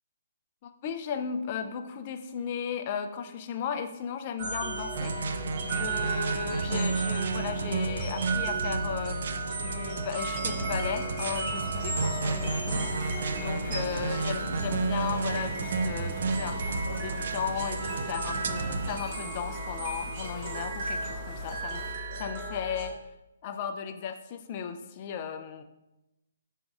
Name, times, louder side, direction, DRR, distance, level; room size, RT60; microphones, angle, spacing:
voice 1, 0.6-5.1 5.7-9.2 9.6-22.9 23.4-25.6, left 7 dB, 40° left, 7 dB, 0.4 m, -36 dB
sound 1, 4.4-22.9, right 2 dB, 40° right, 0.9 m, -35 dB
sound 2, 4.9-19.0, right 4 dB, 60° right, 0.3 m, -32 dB
sound 3, 11.5-21.9, left 1 dB, 10° left, 0.9 m, -45 dB
5.2 x 3.6 x 2.3 m, 0.92 s
hypercardioid pair, 140°, 0 cm